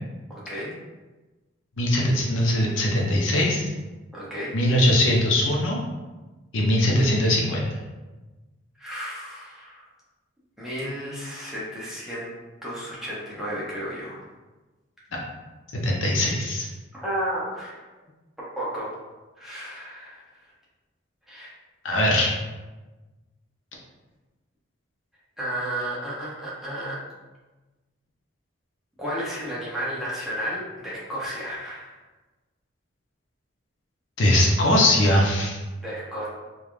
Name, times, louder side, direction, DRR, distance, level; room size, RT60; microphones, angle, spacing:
voice 1, 0.3-0.7 4.1-4.5 8.8-9.8 10.6-12.3 12.6-14.2 17.0-17.8 18.6-18.9 19.4-20.3 21.3-21.5 25.4-27.0 29.0-32.0 35.8-36.3, equal, ahead, -8 dB, 0.6 m, -32 dB
voice 2, 1.8-3.7 4.5-5.8 6.5-7.6 15.8-16.7 21.8-22.4 34.2-35.6, left 1 dB, 70° left, -2 dB, 0.6 m, -21 dB
3.2 x 2.3 x 2.4 m, 1.2 s
head